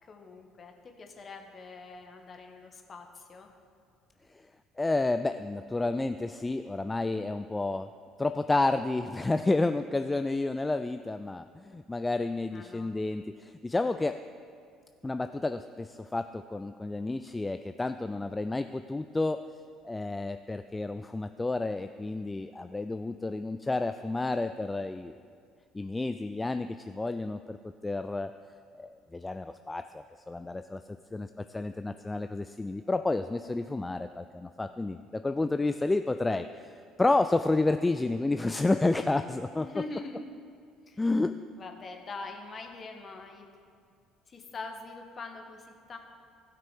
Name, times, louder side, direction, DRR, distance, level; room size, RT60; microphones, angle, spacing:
voice 1, 0.0-3.5 12.5-12.9 39.6-40.4 40.9-41.0 41.6-43.4 44.3-46.0, left 3 dB, 40° left, 4 dB, 1.4 m, -43 dB
voice 2, 4.8-7.9 8.2-14.2 15.0-19.4 19.8-25.2 25.7-28.3 28.8-30.8 31.1-36.7 37.0-39.7 41.0-41.3, left 2 dB, 15° left, 10 dB, 0.3 m, -30 dB
15.5 x 6.0 x 4.7 m, 2.2 s
hypercardioid pair, 55°, 0 cm